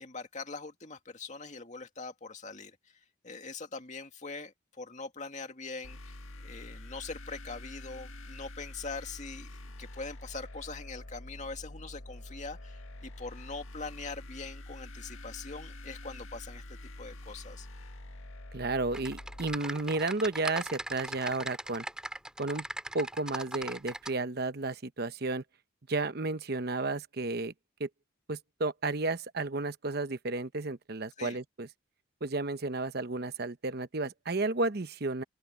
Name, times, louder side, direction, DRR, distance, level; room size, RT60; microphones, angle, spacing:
voice 1, 0.0-2.8 3.2-9.5 9.8-17.7 31.2-31.4, left 4 dB, 35° left, 2.2 m, -42 dB
sound 1, 5.8-19.5, left 1 dB, 85° left, 1.8 m, -46 dB
voice 2, 18.5-21.9 22.4-22.7 22.9-25.4 25.9-27.5 27.8-27.9 28.3-31.7 32.2-35.2, right 3 dB, 50° right, 0.9 m, -32 dB
Typing, 18.9-24.1, right 1 dB, 5° right, 2.1 m, -39 dB
open air
head